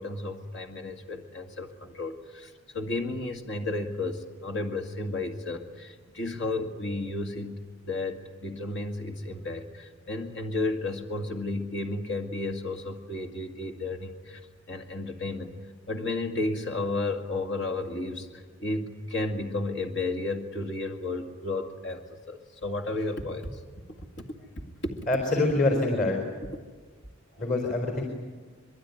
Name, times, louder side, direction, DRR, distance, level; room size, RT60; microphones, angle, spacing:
voice 1, 0.0-14.4 14.7-15.5 15.9-23.6 24.2-24.3, left 2 dB, 60° left, 4 dB, 2.2 m, -33 dB
voice 2, 25.1-26.2 27.4-28.0, left 2 dB, 40° left, 3 dB, 4.4 m, -25 dB
24.5 x 23.0 x 9.8 m, 1.4 s
head